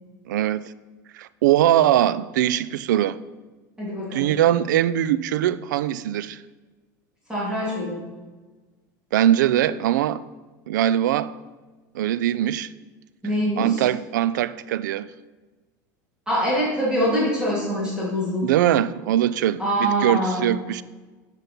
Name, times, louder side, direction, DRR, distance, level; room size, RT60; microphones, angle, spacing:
voice 1, 0.3-0.6 1.1-3.2 4.1-6.4 9.1-10.2 10.7-11.3 11.9-12.7 13.6-15.1 18.4-20.8, right 12 dB, 90° right, 0.3 m, -21 dB
voice 2, 3.8-4.4 7.3-8.0 13.2-13.8 16.3-18.5 19.6-20.6, equal, 10° right, 2.7 m, -24 dB
7.5 x 5.7 x 5.2 m
supercardioid pair, 115°, 10 cm